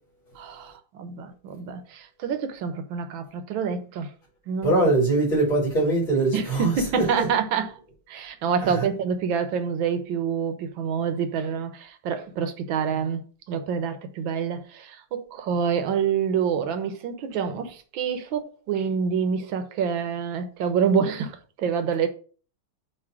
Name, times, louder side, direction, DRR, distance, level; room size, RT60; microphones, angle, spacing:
voice 1, 0.4-4.1 4.5-4.9 6.3-7.7 8.1-13.2 13.5-22.1, right 6 dB, 70° right, 1.7 m, -27 dB
voice 2, 4.6-7.3 8.6-8.9, right 2 dB, 65° left, 3.4 m, -22 dB
8.6 x 2.9 x 6.1 m
omnidirectional pair, 2.3 m